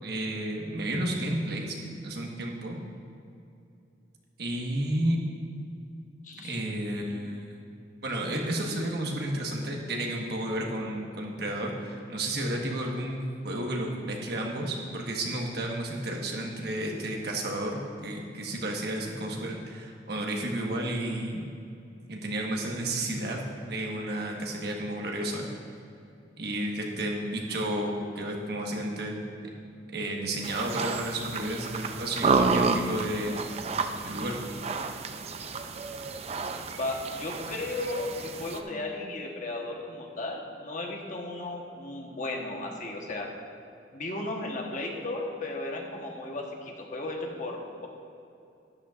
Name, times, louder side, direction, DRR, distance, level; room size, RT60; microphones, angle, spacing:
voice 1, 0.0-1.8 2.0-2.8 4.4-5.2 6.4-7.6 8.0-21.5 22.1-25.4 26.4-29.2 29.9-33.4 34.0-34.4, right 1 dB, 65° right, 0 dB, 1.4 m, -32 dB
voice 2, 6.2-6.7 7.1-7.2 36.8-43.3 43.9-47.9, left 2 dB, 45° left, 1 dB, 1.2 m, -35 dB
sound 1, 30.4-38.6, right 4 dB, 35° right, 0.5 m, -30 dB
13.0 x 11.0 x 2.5 m, 2.6 s
head